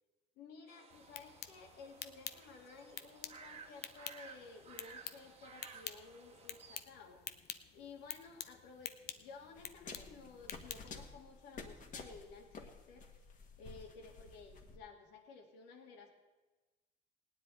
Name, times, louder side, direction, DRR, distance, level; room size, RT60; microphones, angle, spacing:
voice 1, 0.4-7.2 7.7-13.1 13.6-16.1, left 4 dB, 90° left, 2 dB, 2.1 m, -55 dB
sound 1, 0.7-6.8, right 5 dB, 35° right, 1.3 m, -57 dB
sound 2, 0.9-11.1, left 11 dB, 75° left, 0.7 m, -50 dB
sound 3, 9.6-14.8, left 4 dB, 50° left, 1.6 m, -51 dB
18.0 x 9.9 x 4.2 m, 1.2 s
cardioid pair, 110°, 17 cm